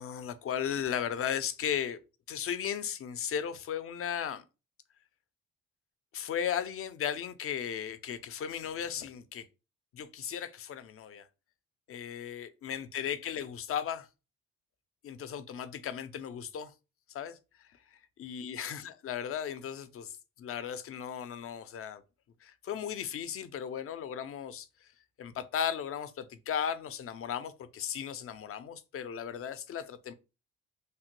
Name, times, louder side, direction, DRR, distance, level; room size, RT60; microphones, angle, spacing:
voice 1, 0.0-2.0 2.3-4.4 6.1-9.5 9.9-11.3 11.9-14.1 15.0-16.7 17.1-17.4 18.2-22.0 22.4-24.7 25.2-30.1, left 8 dB, 50° left, 0.4 m, -36 dB
3.2 x 2.1 x 2.9 m
cardioid pair, 90°, 30 cm